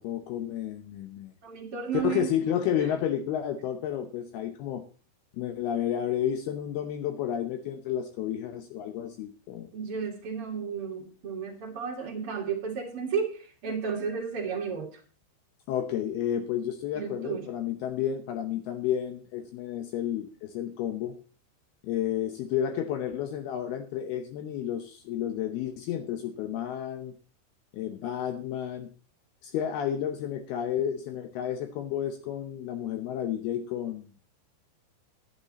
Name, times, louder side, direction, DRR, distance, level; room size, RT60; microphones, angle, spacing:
voice 1, 0.0-1.3 1.9-4.8 5.3-9.7 15.7-21.2 21.8-27.1 27.7-28.9 29.4-34.1, left 10 dB, 75° left, 7 dB, 2.5 m, -31 dB
voice 2, 1.4-2.3 9.7-14.9 16.9-17.5, right 6 dB, 45° right, 1 dB, 2.1 m, -33 dB
11.5 x 10.5 x 4.1 m, 0.39 s
omnidirectional pair, 5.3 m